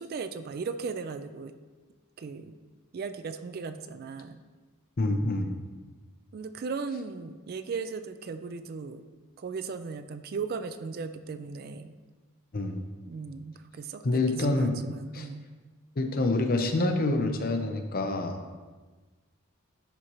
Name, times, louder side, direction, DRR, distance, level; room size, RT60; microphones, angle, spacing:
voice 1, 0.0-1.5 2.2-2.6 2.9-4.4 6.3-9.0 9.4-11.9 13.1-15.5, right 5 dB, 45° right, 10 dB, 0.3 m, -37 dB
voice 2, 5.0-5.5 12.5-12.8 14.0-14.8 15.1-15.3 16.0-18.4, left 2 dB, 45° left, 5 dB, 0.6 m, -27 dB
11.0 x 4.2 x 3.0 m, 1.3 s
head